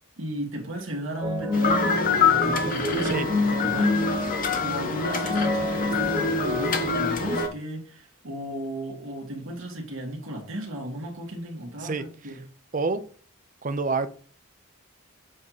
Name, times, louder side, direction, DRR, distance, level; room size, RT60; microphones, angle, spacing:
voice 1, 0.2-12.4, right 1 dB, 70° right, 2.0 m, -35 dB
sound 1, 1.2-7.4, left 2 dB, 20° right, 1.3 m, -28 dB
sound 2, 1.5-7.5, left 5 dB, 40° left, 0.9 m, -26 dB
voice 2, 13.6-14.1, right 4 dB, 40° right, 0.6 m, -27 dB
7.5 x 3.1 x 4.0 m
head